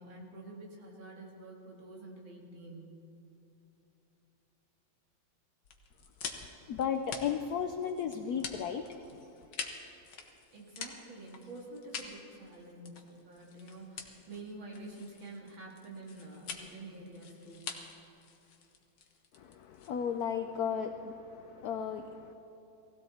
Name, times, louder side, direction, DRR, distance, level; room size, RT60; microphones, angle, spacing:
voice 1, 0.0-2.9 10.5-17.7, right 2 dB, 65° right, -2 dB, 3.0 m, -48 dB
sound 1, 5.6-20.3, left 5 dB, 60° left, 1.7 m, -46 dB
voice 2, 6.4-9.3 19.3-22.3, left 7 dB, 80° left, 8 dB, 0.8 m, -35 dB
18.5 x 16.0 x 4.3 m, 3.0 s
omnidirectional pair, 2.3 m